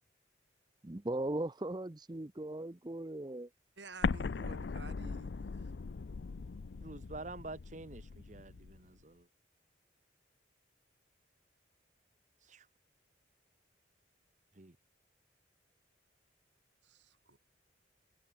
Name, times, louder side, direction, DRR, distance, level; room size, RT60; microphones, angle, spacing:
voice 1, 0.8-3.5, right 1 dB, 20° right, 0.7 m, -38 dB
voice 2, 3.8-5.7 16.8-17.4, right 3 dB, 70° right, 2.9 m, -52 dB
Explosion, 4.0-8.8, left 4 dB, 65° left, 0.5 m, -39 dB
voice 3, 6.8-9.3 12.4-12.7 14.5-14.8, right 2 dB, 40° right, 1.1 m, -48 dB
head